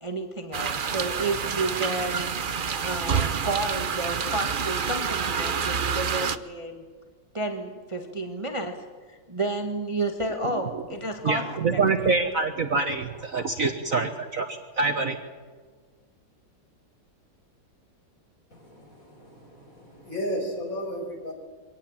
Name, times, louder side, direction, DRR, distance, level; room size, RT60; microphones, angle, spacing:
voice 1, 0.0-6.8 7.3-8.8 9.1-11.4 11.7-11.8, right 2 dB, 15° right, 4 dB, 1.5 m, -31 dB
sound 1, 0.5-6.4, right 6 dB, 75° right, 0.4 m, -28 dB
voice 2, 11.2-15.2, right 4 dB, 45° right, 6 dB, 1.4 m, -25 dB
voice 3, 18.5-21.3, equal, 40° left, 1 dB, 5.7 m, -34 dB
23.5 x 18.0 x 8.9 m, 1.5 s
omnidirectional pair, 2.2 m